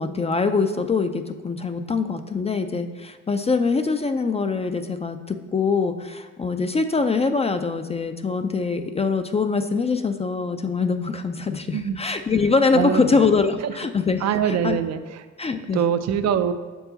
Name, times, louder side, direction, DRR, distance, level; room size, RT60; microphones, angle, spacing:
voice 1, 0.0-14.8 15.4-15.8, left 4 dB, 20° left, 8 dB, 0.3 m, -23 dB
voice 2, 12.7-13.7 14.2-15.2 15.7-16.5, right 8 dB, 60° right, 10 dB, 0.5 m, -24 dB
6.6 x 4.7 x 3.9 m, 1.4 s
cardioid pair, 90°, 30 cm